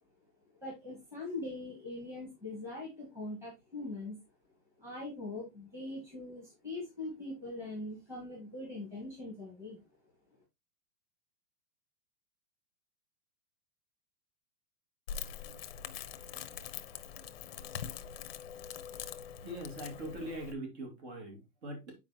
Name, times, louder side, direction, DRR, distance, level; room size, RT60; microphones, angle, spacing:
voice 1, 0.6-4.2 4.8-9.8, left 2 dB, 5° right, 1.7 m, -42 dB
Crackle, 15.1-20.5, left 8 dB, 40° left, 0.7 m, -43 dB
voice 2, 19.4-21.9, right 1 dB, 45° right, 2.6 m, -42 dB
8.9 x 4.9 x 2.8 m
supercardioid pair, 180°, 45 cm